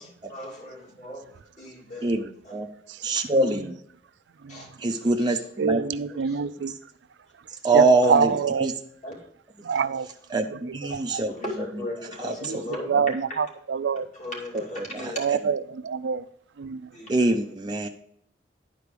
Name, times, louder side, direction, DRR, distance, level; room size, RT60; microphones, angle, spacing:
voice 1, 0.0-1.3 1.6-2.2 2.4-2.6 3.1-3.2 4.5-5.5 6.1-6.4 8.0-8.4 9.0-9.2 10.9-11.0 11.3-13.4 14.1-15.3 16.9-17.3, left 1 dB, 45° left, -2 dB, 2.6 m, -38 dB
voice 2, 2.0-2.7 3.0-3.7 4.8-5.8 7.6-8.7 10.3-11.3 12.2-12.6 12.9-13.0 14.8-15.4 17.1-17.9, right 2 dB, 25° right, 3 dB, 0.5 m, -24 dB
voice 3, 5.6-6.7 7.7-8.7 9.7-10.1 10.9-11.2 12.4-12.6 12.9-14.1 15.2-16.2 16.6-16.8, right 6 dB, 80° right, 13 dB, 0.4 m, -25 dB
10.5 x 4.7 x 5.1 m, 0.68 s
head